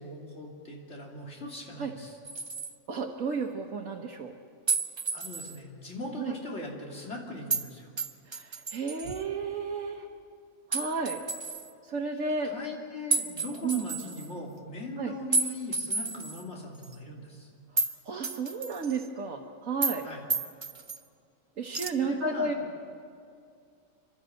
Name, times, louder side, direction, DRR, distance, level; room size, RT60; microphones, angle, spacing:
voice 1, 0.0-2.2 5.1-7.9 12.5-17.5 20.0-20.2 22.0-22.6, left 1 dB, 55° left, -1 dB, 3.3 m, -40 dB
sound 1, 2.2-2.7 4.7-5.5 7.5-7.7 8.0-9.2 10.7-11.7 13.1-14.3 15.3-16.4 16.8-16.9 17.8-18.0 18.2-19.1 19.8-20.0 20.3-21.0 21.7-21.9, right 3 dB, 30° right, 0.5 m, -31 dB
voice 2, 2.9-4.3 6.2-6.3 8.3-10.1 10.7-11.2 11.8-12.5 13.6-13.8 15.0-15.2 18.0-20.1 21.6-22.5, right 4 dB, 75° right, 0 dB, 1.5 m, -32 dB
28.0 x 12.0 x 7.8 m, 2.4 s
omnidirectional pair, 1.4 m